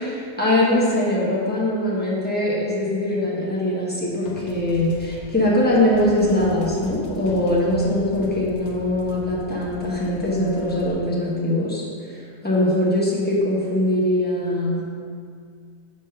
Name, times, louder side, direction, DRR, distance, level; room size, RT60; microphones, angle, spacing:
voice 1, 0.1-14.8, left 1 dB, 10° left, -7 dB, 0.8 m, -22 dB
sound 1, 4.3-10.9, left 1 dB, 70° left, 1.2 m, -39 dB
5.3 x 3.4 x 5.6 m, 2.2 s
omnidirectional pair, 1.7 m